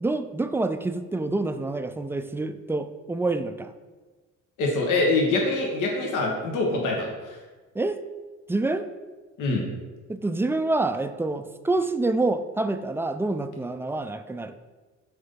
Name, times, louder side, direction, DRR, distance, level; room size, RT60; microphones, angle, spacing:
voice 1, 0.0-3.7 7.7-8.0 8.5-8.9 10.1-14.5, right 2 dB, 10° right, 10 dB, 0.3 m, -27 dB
voice 2, 4.6-7.4 9.4-9.6, left 2 dB, 85° left, 0 dB, 1.1 m, -24 dB
7.7 x 2.7 x 5.1 m, 1.3 s
cardioid pair, 90°, 30 cm